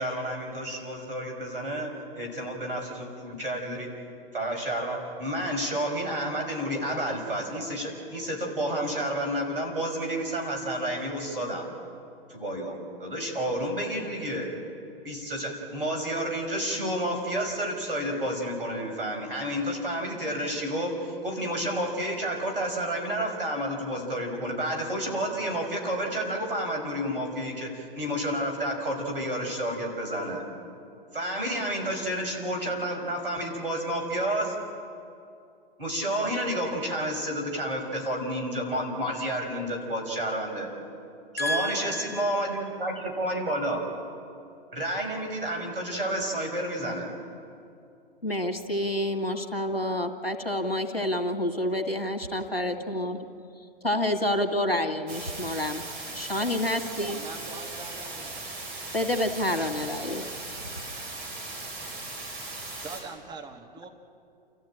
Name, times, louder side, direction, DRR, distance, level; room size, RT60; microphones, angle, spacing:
voice 1, 0.0-3.9 4.3-11.7 12.3-14.5 15.0-30.4 31.1-34.6 35.8-40.7 41.3-43.8 44.7-47.1, right 1 dB, 70° right, 6.0 m, -30 dB
voice 2, 41.4-42.3 48.2-53.3 53.6-57.2 58.9-60.2, left 1 dB, 90° left, 2.2 m, -29 dB
sound 1, 55.1-63.0, right 2 dB, 35° right, 7.5 m, -38 dB
voice 3, 56.6-58.3 59.6-59.7 62.8-63.9, right 4 dB, 15° right, 1.6 m, -43 dB
29.0 x 14.0 x 9.0 m
figure-of-eight pair, 105°, 29 cm